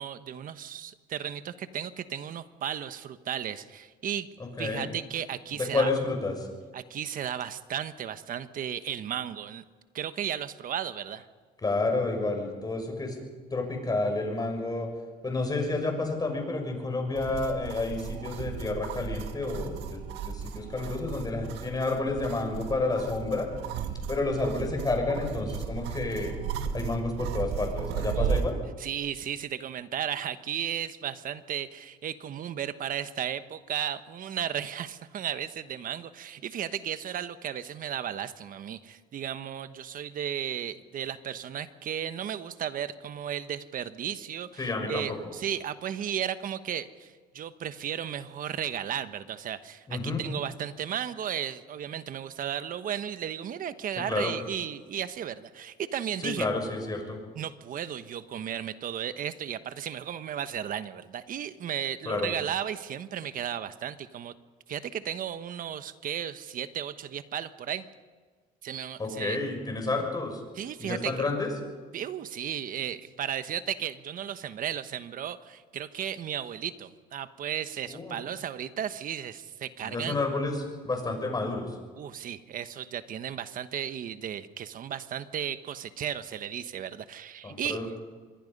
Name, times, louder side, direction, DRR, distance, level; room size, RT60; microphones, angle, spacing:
voice 1, 0.0-4.3 4.6-5.9 6.7-9.6 9.9-11.3 28.1-28.4 28.8-56.5 57.3-64.3 64.7-67.8 68.6-69.4 70.5-71.2 71.9-80.2 82.0-87.8, right 9 dB, 55° right, 12 dB, 1.3 m, -34 dB
voice 2, 4.6-4.9 5.5-6.5 11.6-13.2 13.5-14.9 15.2-23.5 24.1-26.4 26.7-28.6 44.6-45.3 49.9-50.2 54.1-54.3 56.2-57.2 62.1-62.3 69.0-70.4 70.8-71.5 77.8-78.2 79.8-81.8 87.4-88.0, left 3 dB, 25° left, 3 dB, 6.2 m, -30 dB
sound 1, 17.2-28.5, right 7 dB, 90° right, 1.9 m, -35 dB
26.0 x 22.0 x 5.4 m, 1.5 s
cardioid pair, 110°, 17 cm